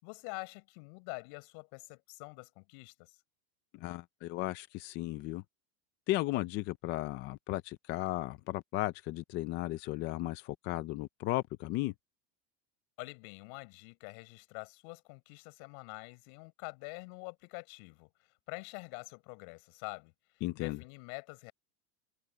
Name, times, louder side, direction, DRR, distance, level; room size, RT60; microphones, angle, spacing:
voice 1, 0.0-3.2 13.0-18.1 18.5-20.1 20.6-21.5, left 37 dB, 55° left, 5.4 m, -46 dB
voice 2, 3.7-5.4 6.1-11.9 20.4-20.8, left 17 dB, 25° left, 0.4 m, -35 dB
supercardioid pair, 145°, 48 cm